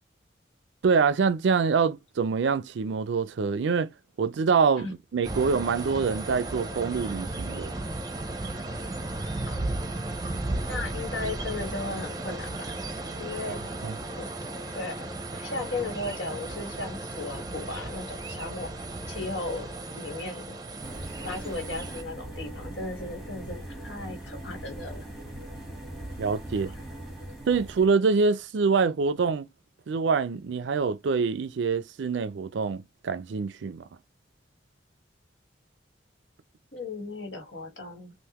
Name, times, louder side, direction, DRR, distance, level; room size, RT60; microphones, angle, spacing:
voice 1, 0.8-3.9 4.2-7.8 13.5-13.6 13.8-14.0 26.2-26.7 27.5-29.5 29.9-33.8, right 5 dB, 75° right, 0.4 m, -25 dB
sound 1, 5.2-22.0, right 2 dB, 20° right, 0.6 m, -35 dB
voice 2, 10.6-12.7 13.2-13.6 14.2-14.3 14.7-18.7 19.1-19.7 19.9-20.6 21.2-25.0 26.5-26.7 36.7-38.1, left 3 dB, 80° left, 1.7 m, -36 dB
sound 2, 20.8-27.9, right 1 dB, ahead, 1.0 m, -40 dB
3.5 x 2.5 x 2.9 m
head